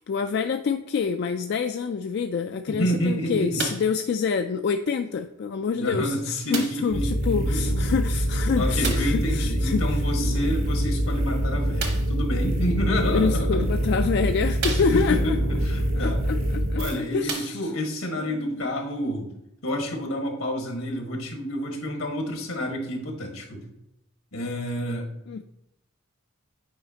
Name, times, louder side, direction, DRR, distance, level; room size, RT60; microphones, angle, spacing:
voice 1, 0.1-9.8 13.1-15.4 15.9-17.6 18.2-18.7 25.3-25.4, left 5 dB, 55° left, 7 dB, 0.3 m, -27 dB
voice 2, 2.7-3.7 5.7-7.6 8.6-13.7 14.8-16.2 16.8-19.3 19.6-23.7 24.3-25.1, equal, 80° left, 2 dB, 1.5 m, -29 dB
sound 1, 3.6-4.0 4.9-5.0 6.5-6.9 8.8-9.2 11.8-12.2 13.2-13.3 13.9-14.0 14.6-15.3 16.6-16.7 17.2-17.9 18.7-18.8, right 5 dB, 55° right, 1.1 m, -33 dB
sound 2, 6.9-16.9, equal, 80° right, 1.8 m, -25 dB
8.6 x 5.0 x 2.8 m, 0.83 s
head